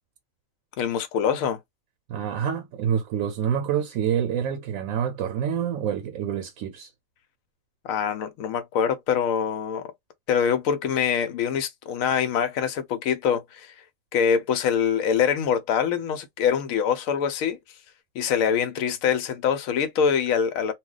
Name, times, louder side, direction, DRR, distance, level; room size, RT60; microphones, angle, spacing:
voice 1, 0.8-1.6 7.8-9.8 10.3-13.7 14.1-17.6 18.1-20.7, left 7 dB, 90° left, 1.0 m, -24 dB
voice 2, 2.1-6.9, right 8 dB, 80° right, 1.0 m, -27 dB
2.3 x 2.2 x 3.7 m
omnidirectional pair, 1.4 m